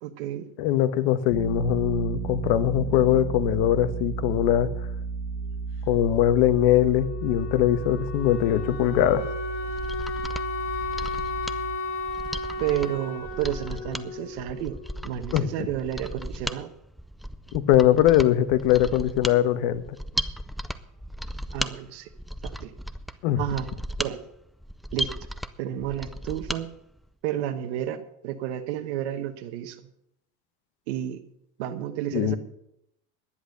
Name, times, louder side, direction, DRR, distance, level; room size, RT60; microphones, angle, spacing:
voice 1, 0.0-0.5 12.6-14.8 15.0-16.7 21.5-22.1 22.4-22.7 23.4-23.7 24.0-24.2 24.9-25.1 25.6-26.7 27.2-29.8 30.9-31.2 31.6-32.4, right 11 dB, 85° right, 7 dB, 1.2 m, -31 dB
voice 2, 0.6-4.7 5.9-9.3 15.3-15.5 17.5-19.8 23.2-23.4 32.1-32.4, left 12 dB, 75° left, 12 dB, 1.2 m, -21 dB
sound 1, 1.3-11.8, right 5 dB, 35° right, 1.7 m, -34 dB
Wind instrument woodwind instrument, 6.5-15.2, left 2 dB, 45° left, 2.3 m, -34 dB
Mechanisms, 9.5-26.6 27.0-27.1, equal, ahead, 0.4 m, -36 dB
11.0 x 10.5 x 6.5 m, 0.76 s
supercardioid pair, 130°, 32 cm